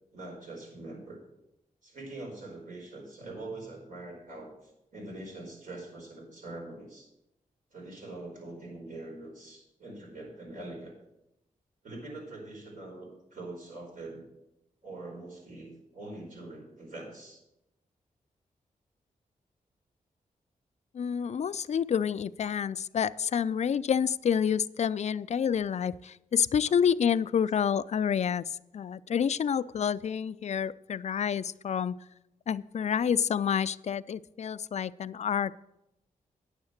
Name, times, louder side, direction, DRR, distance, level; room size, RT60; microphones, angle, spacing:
voice 1, 0.1-1.2 1.8-7.1 7.7-10.9 11.8-14.3 14.8-17.4 26.7-26.8, right 2 dB, 65° right, -1 dB, 4.8 m, -43 dB
voice 2, 20.9-32.0 32.5-35.6, left 7 dB, 50° left, 18 dB, 0.4 m, -28 dB
9.5 x 7.3 x 6.4 m, 0.88 s
cardioid pair, 60°, 15 cm